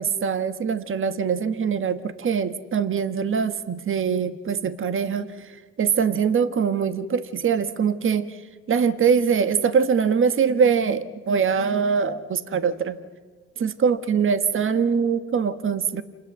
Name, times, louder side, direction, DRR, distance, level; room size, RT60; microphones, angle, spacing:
voice 1, 0.0-8.4 8.7-13.0 13.6-16.0, right 6 dB, 40° right, 11 dB, 1.5 m, -23 dB
27.5 x 19.5 x 7.6 m, 1.5 s
supercardioid pair, 80°, 33 cm